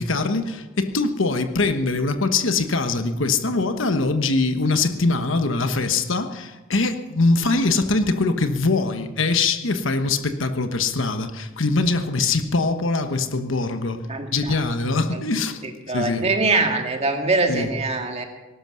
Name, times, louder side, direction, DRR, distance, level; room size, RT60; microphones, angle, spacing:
voice 1, 0.0-14.0 14.3-15.6 15.9-16.3 17.5-17.7, left 3 dB, 65° left, 8 dB, 1.2 m, -22 dB
voice 2, 14.1-14.6 15.1-15.2 15.9-18.2, right 3 dB, 30° right, 4 dB, 2.0 m, -23 dB
19.0 x 11.5 x 6.4 m, 1.2 s
head